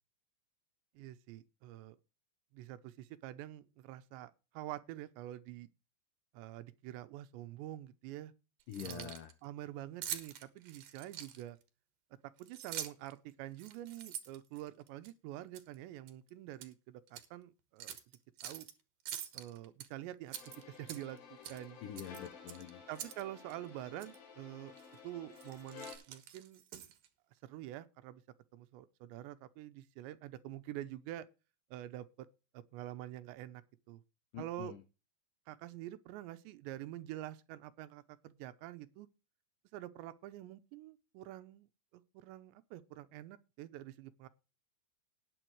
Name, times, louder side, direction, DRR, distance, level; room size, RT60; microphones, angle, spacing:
voice 1, 1.0-2.0 2.5-5.7 6.3-8.3 8.8-9.1 9.4-11.6 12.4-18.0 18.4-18.7 19.3-20.3 20.7-21.8 22.9-24.8 25.0-26.6 27.4-28.2 28.5-31.3 31.7-32.3 32.5-33.6 33.9-34.0 34.4-34.7 35.5-39.1 39.7-41.7 41.9-44.3, right 14 dB, 80° right, 2.9 m, -47 dB
Keys jangling, 8.6-9.3 10.0-11.6 12.4-13.1 13.5-15.1 15.5-15.7 16.1-16.7 17.1-17.3 17.8-18.7 19.1-19.9 20.3-21.2 21.4-21.6 22.0-23.2 23.5-23.6 24.0-24.2 24.8-25.0 25.3-27.1, right 10 dB, 65° right, 2.5 m, -45 dB
voice 2, 8.7-9.3 21.8-22.8 34.3-34.8, left 9 dB, 85° left, 1.8 m, -45 dB
sound 1, 20.3-26.0, left 6 dB, 70° left, 5.1 m, -53 dB
19.5 x 6.9 x 3.1 m
omnidirectional pair, 5.2 m